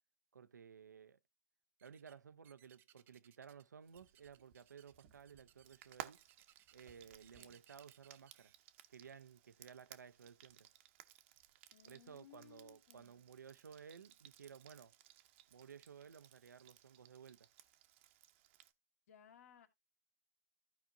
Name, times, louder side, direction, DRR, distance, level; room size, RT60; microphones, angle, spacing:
voice 1, 0.3-1.2 1.8-6.2 6.7-8.5 8.9-10.7 11.8-14.9 15.5-17.5, right 7 dB, 85° right, 0.6 m, -57 dB
sound 1, 1.8-2.2 2.4-3.7 3.9-8.5, right 12 dB, 20° right, 0.6 m, -68 dB
Frying (food), 3.9-18.7, right 13 dB, 45° right, 0.9 m, -59 dB
voice 2, 11.7-13.3 19.1-19.7, left 9 dB, 55° left, 2.0 m, -63 dB
15.0 x 5.0 x 2.6 m
hypercardioid pair, 130°, 9 cm